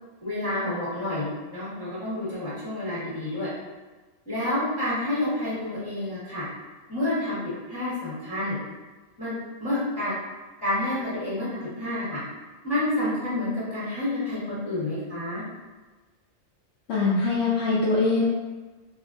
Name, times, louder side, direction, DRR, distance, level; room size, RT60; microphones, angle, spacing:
voice 1, 0.2-1.2 1.5-3.5 4.3-6.4 6.9-7.4 7.7-8.6 9.2-10.1 10.6-12.2 12.6-15.4, left 1 dB, 20° left, -10 dB, 0.8 m, -29 dB
voice 2, 16.9-18.2, left 3 dB, 85° left, -7 dB, 0.9 m, -23 dB
2.8 x 2.5 x 2.4 m, 1.3 s
omnidirectional pair, 1.2 m